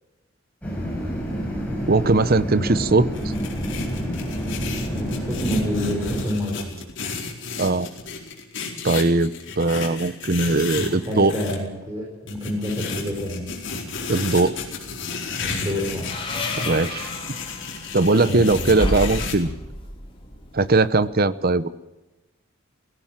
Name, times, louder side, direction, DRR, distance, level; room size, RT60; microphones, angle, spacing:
sound 1, 0.6-6.3, equal, 5° left, 6.3 m, -28 dB
voice 1, 1.9-3.1 7.6-7.9 8.8-11.3 14.1-14.5 16.6-17.1 17.9-19.5 20.5-21.7, right 3 dB, 45° right, 15 dB, 0.9 m, -20 dB
sound 2, 3.1-11.6 12.3-19.4, left 4 dB, 60° left, 4.5 m, -33 dB
voice 2, 4.9-6.7 10.7-13.4 15.4-16.2 18.3-18.7, left 1 dB, 20° right, -3 dB, 5.1 m, -28 dB
sound 3, 15.4-21.1, left 1 dB, 25° left, 4.4 m, -32 dB
17.5 x 17.5 x 8.9 m, 1.0 s
head